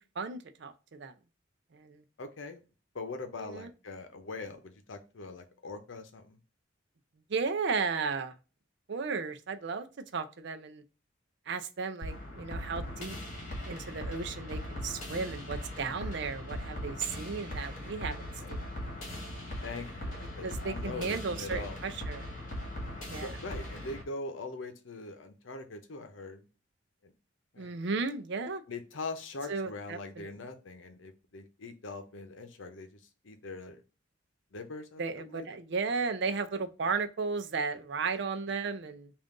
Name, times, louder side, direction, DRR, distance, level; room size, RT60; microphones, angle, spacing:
voice 1, 0.2-1.1 1.7-2.0 3.4-3.7 7.3-8.3 8.9-9.9 10.1-10.8 11.5-13.1 13.7-18.2 18.5-18.6 20.4-22.3 23.1-23.3 27.6-28.6 29.5-30.3 35.0-39.1, right 4 dB, 60° right, 0.5 m, -34 dB
voice 2, 2.2-2.6 2.9-6.4 18.4-18.6 19.6-21.8 23.2-26.5 27.0-27.1 27.5-27.7 28.7-32.9 33.2-33.8 34.5-35.5, left 3 dB, 80° left, 0.8 m, -42 dB
sound 1, 12.0-24.0, left 1 dB, 40° left, 1.7 m, -39 dB
3.6 x 2.5 x 3.7 m
head